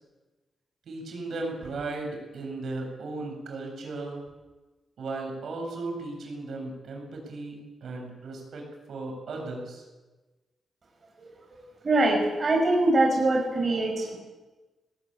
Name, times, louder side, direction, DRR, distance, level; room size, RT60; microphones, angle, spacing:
voice 1, 0.9-4.2 5.0-9.8, right 2 dB, 75° right, 1 dB, 7.5 m, -36 dB
voice 2, 11.8-14.2, right 2 dB, 40° right, 0 dB, 5.7 m, -23 dB
19.0 x 18.5 x 9.0 m, 1.2 s
cardioid pair, 95°, 0 cm